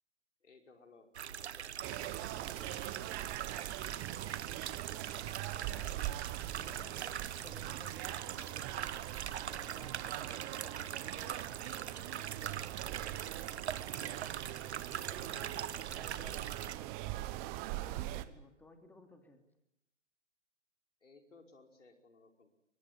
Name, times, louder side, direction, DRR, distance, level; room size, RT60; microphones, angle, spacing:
voice 1, 0.4-1.1 2.1-3.3 21.0-22.5, left 3 dB, 75° left, 4 dB, 5.3 m, -60 dB
sound 1, 1.1-16.8, right 9 dB, 60° right, 1.1 m, -42 dB
sound 2, 1.8-18.3, right 15 dB, 25° right, 1.2 m, -42 dB
voice 2, 5.7-6.1 6.5-8.7 9.4-11.4 11.9-14.5 15.1-17.2 17.8-19.4, left 2 dB, 5° left, 5 dB, 2.9 m, -58 dB
23.5 x 19.5 x 9.8 m, 0.84 s
figure-of-eight pair, 125°, 37 cm